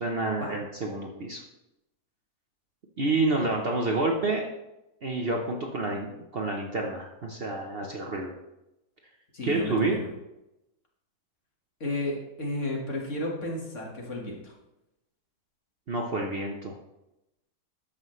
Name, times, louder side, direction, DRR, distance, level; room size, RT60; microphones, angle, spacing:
voice 1, 0.0-1.4 3.0-4.5 5.0-8.3 9.4-10.0 15.9-16.8, right 2 dB, 45° right, 1 dB, 0.9 m, -28 dB
voice 2, 9.3-10.1 11.8-14.5, left 2 dB, 50° left, -1 dB, 1.9 m, -33 dB
13.0 x 5.5 x 3.1 m, 0.91 s
omnidirectional pair, 1.7 m